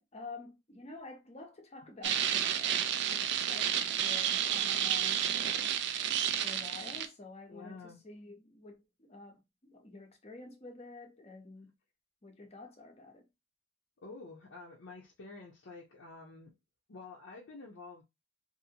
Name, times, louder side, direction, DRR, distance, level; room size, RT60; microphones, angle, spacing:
voice 1, 0.0-5.7 6.4-11.7 12.2-13.3, left 3 dB, 35° left, 0.7 m, -49 dB
sound 1, 2.0-7.1, right 9 dB, 60° right, 0.4 m, -31 dB
voice 2, 7.5-8.0 14.0-16.5 16.9-18.0, left 3 dB, 75° left, 0.6 m, -49 dB
2.6 x 2.6 x 2.8 m
head